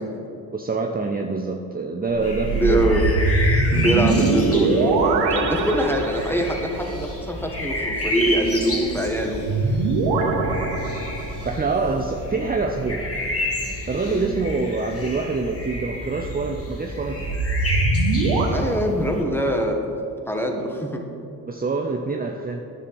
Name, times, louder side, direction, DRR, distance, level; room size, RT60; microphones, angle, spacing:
voice 1, 0.5-3.0 11.4-13.2 13.9-17.4 21.5-22.7, right 3 dB, 20° right, 3 dB, 0.7 m, -26 dB
sound 1, 2.1-6.6 9.5-11.6 17.2-18.5, right 3 dB, 85° right, 0.9 m, -22 dB
sound 2, 2.2-19.2, left 1 dB, 35° left, 1.9 m, -30 dB
voice 2, 2.5-3.0 3.7-9.8 14.0-14.3 18.5-19.8 20.3-21.0, equal, 5° left, 2 dB, 1.5 m, -24 dB
9.8 x 7.1 x 4.3 m, 2.6 s
supercardioid pair, 50°, 42 cm